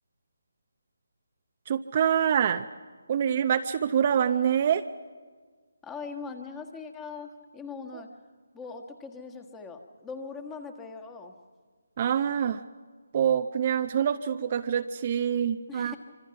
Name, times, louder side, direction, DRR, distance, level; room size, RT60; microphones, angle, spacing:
voice 1, 1.7-2.7 3.1-4.8 7.9-8.0 12.0-12.6 13.1-15.9, right 8 dB, 35° right, 9 dB, 0.6 m, -25 dB
voice 2, 5.8-8.1 8.5-11.3 15.7-16.0, left 4 dB, 10° left, 5 dB, 1.5 m, -41 dB
25.5 x 25.0 x 5.9 m, 1.5 s
figure-of-eight pair, 155°, 0 cm